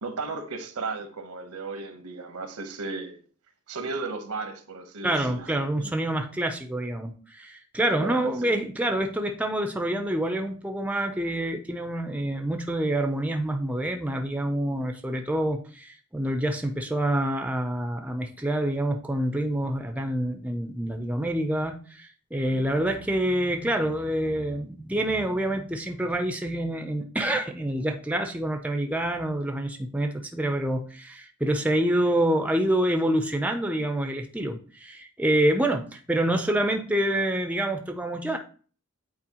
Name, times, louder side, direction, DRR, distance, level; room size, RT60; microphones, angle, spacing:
voice 1, 0.0-3.2 3.7-5.9 8.0-8.5, right 3 dB, 75° right, 1.0 m, -35 dB
voice 2, 5.0-38.4, right 1 dB, 5° right, 0.5 m, -27 dB
8.7 x 4.2 x 2.9 m
head